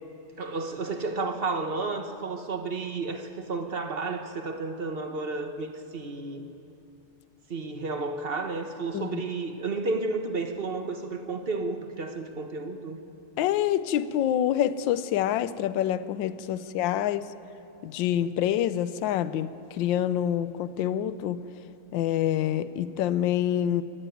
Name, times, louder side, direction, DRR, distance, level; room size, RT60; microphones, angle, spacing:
voice 1, 0.4-6.5 7.5-13.0 16.8-16.9, right 3 dB, 35° right, 1.0 m, -32 dB
voice 2, 13.4-17.3 17.8-21.4 21.9-23.8, left 11 dB, 70° left, 1.3 m, -26 dB
27.0 x 14.5 x 9.3 m
omnidirectional pair, 2.4 m